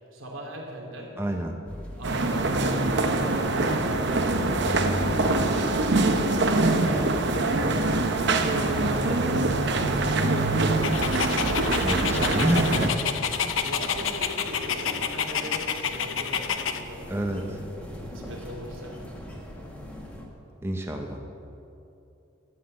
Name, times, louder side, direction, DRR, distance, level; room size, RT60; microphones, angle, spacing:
voice 1, 0.1-1.2 2.0-4.9 5.3-8.1 8.4-9.7 12.0-12.3 13.4-17.5 17.8-19.0, equal, 80° right, -1 dB, 3.0 m, -39 dB
voice 2, 1.2-1.6 11.8-13.1 17.1-17.6 20.6-21.2, right 1 dB, 10° right, 2 dB, 0.9 m, -28 dB
sound 1, 1.7-20.3, equal, 5° left, 1.5 m, -43 dB
sound 2, 2.0-12.9, right 2 dB, 55° right, 0.9 m, -24 dB
Dog, 10.8-16.8, left 7 dB, 70° left, 0.8 m, -29 dB
13.0 x 9.4 x 7.7 m, 2.7 s
head